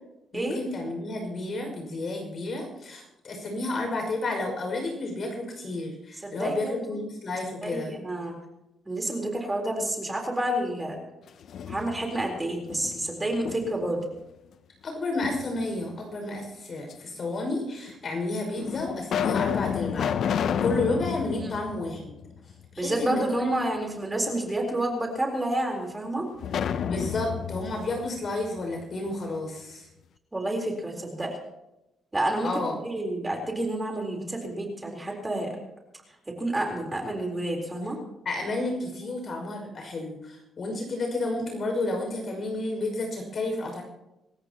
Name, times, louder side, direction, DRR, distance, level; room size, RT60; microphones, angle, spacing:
voice 1, 0.3-7.9 14.8-22.1 22.7-23.5 26.8-29.9 32.4-32.8 38.2-43.8, left 2 dB, 50° left, 2 dB, 5.9 m, -31 dB
voice 2, 6.2-7.0 7.6-8.3 8.9-11.0 11.7-14.0 22.8-26.3 30.3-31.4 32.1-35.6 36.3-38.0, right 1 dB, 15° right, 1 dB, 4.0 m, -29 dB
sound 1, 11.3-12.3 12.7-14.0 15.2-16.0 16.9-17.0 17.9-18.0 18.6-22.7 23.0-23.1 26.4-29.2, left 8 dB, 65° left, 0.7 m, -31 dB
26.5 x 14.0 x 3.0 m, 0.92 s
cardioid pair, 90°, 0 cm